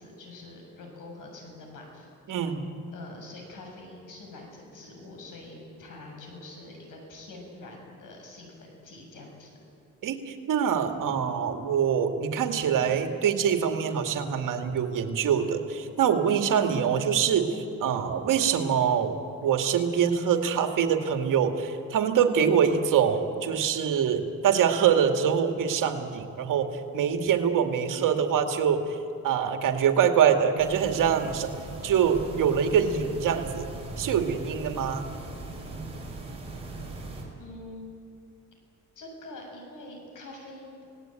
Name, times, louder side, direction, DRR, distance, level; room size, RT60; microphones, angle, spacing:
voice 1, 0.0-2.4 2.9-9.5 37.4-37.9 39.0-40.8, left 2 dB, 80° left, 1 dB, 7.2 m, -45 dB
voice 2, 2.3-2.7 10.0-19.2 19.4-29.0 29.2-31.5 31.8-33.7 34.0-35.1, right 7 dB, 80° right, 5 dB, 2.2 m, -24 dB
sound 1, 30.6-37.2, right 2 dB, 20° right, 6.0 m, -39 dB
28.5 x 18.5 x 9.1 m, 2.5 s
cardioid pair, 135°, 31 cm